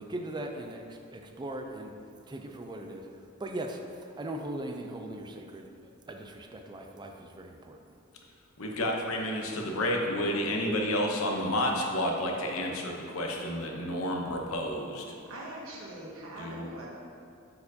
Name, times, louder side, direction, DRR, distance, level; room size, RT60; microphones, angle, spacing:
voice 1, 0.0-2.0 2.3-5.7 6.1-8.0, right 1 dB, 20° right, 4 dB, 0.4 m, -39 dB
voice 2, 8.6-15.0 16.4-16.7, left 1 dB, 80° left, 1 dB, 0.9 m, -30 dB
voice 3, 15.3-16.9, right 1 dB, 80° right, -4 dB, 1.3 m, -42 dB
9.5 x 4.4 x 2.8 m, 2.4 s
head